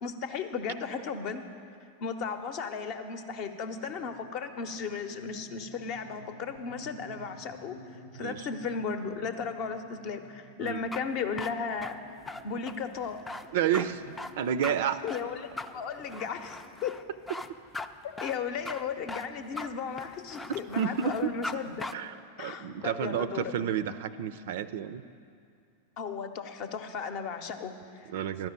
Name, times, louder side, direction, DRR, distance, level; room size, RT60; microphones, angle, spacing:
voice 1, 0.0-1.5 2.0-12.0 12.4-13.2 14.6-14.8 15.0-15.5 15.7-17.0 18.0-21.9 22.4-23.5 26.0-28.1, left 5 dB, 40° left, 8 dB, 0.7 m, -35 dB
sound 1, 3.4-19.0, right 1 dB, 90° left, 0.8 m, -53 dB
sound 2, 10.7-21.5 21.8-21.9, left 2 dB, 10° left, 0.4 m, -40 dB
voice 2, 13.5-15.0 20.8-21.3 21.9-25.0 28.1-28.5, right 9 dB, 55° right, 14 dB, 0.4 m, -30 dB
12.5 x 6.0 x 8.8 m, 2.3 s
figure-of-eight pair, 90°, 0 cm